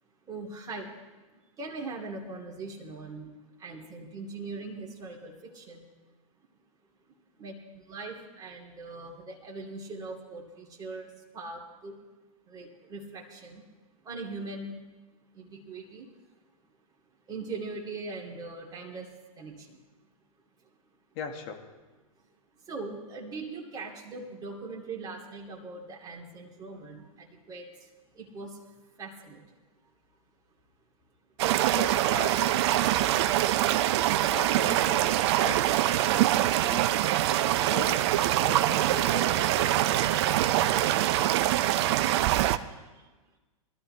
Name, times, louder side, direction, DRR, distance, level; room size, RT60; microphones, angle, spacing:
voice 1, 0.3-0.9 1.6-5.9 7.4-12.0 12.5-13.6 14.0-14.9 15.3-16.1 17.3-19.1 19.4-19.8 22.7-27.9 28.1-28.6 29.0-29.6 42.6-43.1, right 3 dB, 20° right, -1 dB, 2.5 m, -41 dB
voice 2, 21.2-21.6 31.7-32.8 34.3-36.8 37.7-38.0 38.4-38.6 38.9-40.0, left 6 dB, 40° left, 4 dB, 1.8 m, -40 dB
sound 1, 31.4-42.6, right 13 dB, 45° right, 0.6 m, -24 dB
20.5 x 13.0 x 3.3 m, 1.2 s
hypercardioid pair, 120°, 19 cm